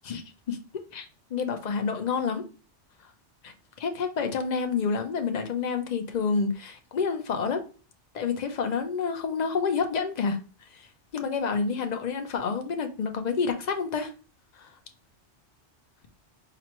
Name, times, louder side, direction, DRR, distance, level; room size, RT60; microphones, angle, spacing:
voice 1, 0.1-0.6 0.9-1.1 1.3-2.4 3.4-7.6 8.1-10.4 10.7-10.8 11.1-14.1 14.6-14.7, left 5 dB, 50° left, 0.5 m, -28 dB
4.3 x 2.5 x 2.9 m
omnidirectional pair, 1.2 m